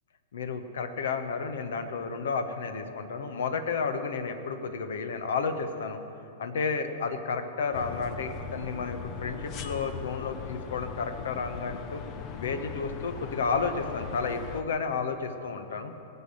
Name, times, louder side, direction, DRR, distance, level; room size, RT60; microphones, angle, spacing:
voice 1, 0.3-6.0 6.4-12.0 12.4-15.9, left 5 dB, 65° left, 8 dB, 1.2 m, -32 dB
sound 1, 7.7-14.6, left 6 dB, 40° left, 0.9 m, -39 dB
18.0 x 8.0 x 7.9 m, 2.8 s
figure-of-eight pair, 100°, 0 cm